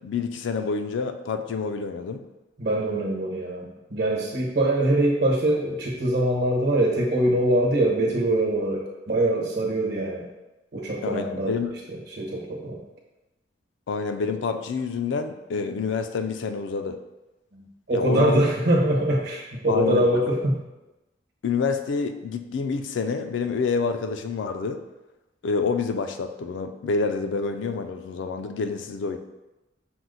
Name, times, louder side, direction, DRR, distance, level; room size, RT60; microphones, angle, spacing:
voice 1, 0.0-2.2 11.0-11.8 13.9-17.0 17.9-18.4 19.7-20.1 21.4-24.8 25.4-29.2, left 5 dB, 70° left, 7 dB, 0.4 m, -27 dB
voice 2, 2.6-10.3 10.7-11.5 11.9-12.8 17.5-20.6, right 1 dB, 65° right, -1 dB, 1.0 m, -23 dB
5.9 x 2.1 x 3.9 m, 1.0 s
head